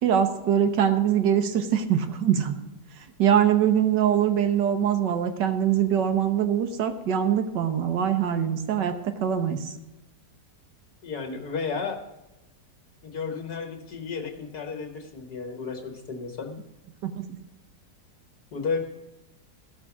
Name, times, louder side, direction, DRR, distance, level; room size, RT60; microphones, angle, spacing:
voice 1, 0.0-2.5 3.2-9.7 17.0-17.4, right 9 dB, 80° right, 8 dB, 1.7 m, -23 dB
voice 2, 11.0-12.0 13.0-16.6 18.5-18.8, left 5 dB, 65° left, 4 dB, 1.9 m, -32 dB
15.0 x 6.1 x 6.0 m, 0.99 s
omnidirectional pair, 1.9 m